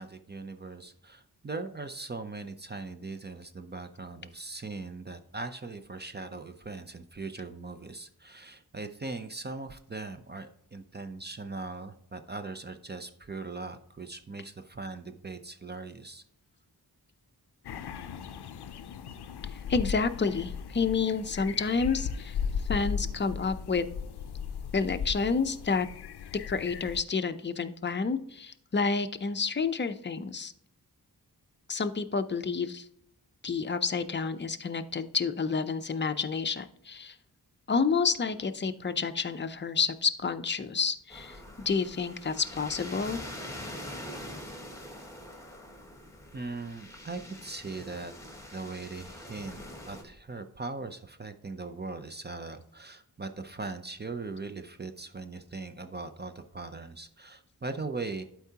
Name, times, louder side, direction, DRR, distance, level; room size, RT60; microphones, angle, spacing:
voice 1, 0.0-16.2 46.3-48.1 48.5-58.2, right 3 dB, 25° right, 8 dB, 0.5 m, -40 dB
sound 1, 17.6-27.0, left 6 dB, 85° left, 0.5 m, -37 dB
voice 2, 19.7-22.4 22.7-23.9 24.7-25.9 26.5-30.5 31.7-32.9 33.4-37.2 37.7-41.4 41.7-43.2, left 5 dB, 30° left, 9 dB, 0.5 m, -29 dB
sound 2, 41.1-50.0, left 1 dB, 10° left, 1.4 m, -44 dB
11.5 x 4.6 x 2.8 m, 0.73 s
wide cardioid pair, 105°, 38 cm